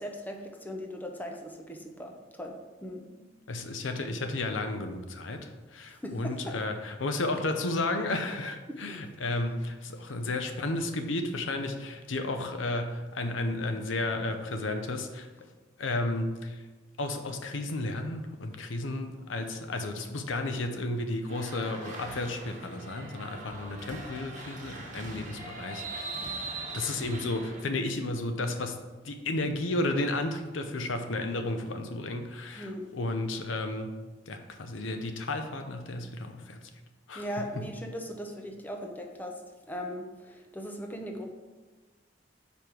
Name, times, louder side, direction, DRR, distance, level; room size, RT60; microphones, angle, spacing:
voice 1, 0.0-2.5 2.8-3.3 6.0-6.5 8.7-8.8 32.5-32.8 37.1-39.4 39.7-41.2, equal, 10° left, 2 dB, 0.7 m, -39 dB
voice 2, 3.5-15.3 15.8-16.6 17.0-26.3 26.7-33.9 34.3-36.6 37.1-37.3 37.6-37.7, left 2 dB, 85° left, 6 dB, 0.7 m, -33 dB
sound 1, 21.3-27.6, right 3 dB, 40° right, 1.3 m, -41 dB
5.2 x 4.8 x 6.0 m, 1.3 s
head